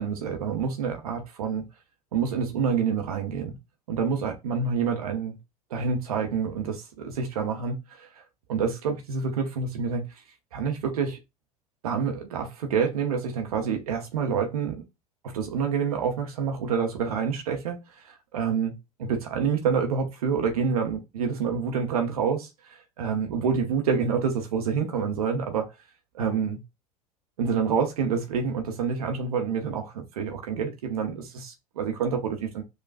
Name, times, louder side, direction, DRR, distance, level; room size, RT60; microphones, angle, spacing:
voice 1, 0.0-1.7 2.1-3.6 3.9-5.4 5.7-8.2 8.5-10.1 10.5-11.2 11.8-14.8 15.2-25.7 26.1-26.6 27.4-32.6, right 6 dB, 70° right, 0.8 m, -27 dB
6.4 x 2.3 x 2.4 m
figure-of-eight pair, 80°, 20 cm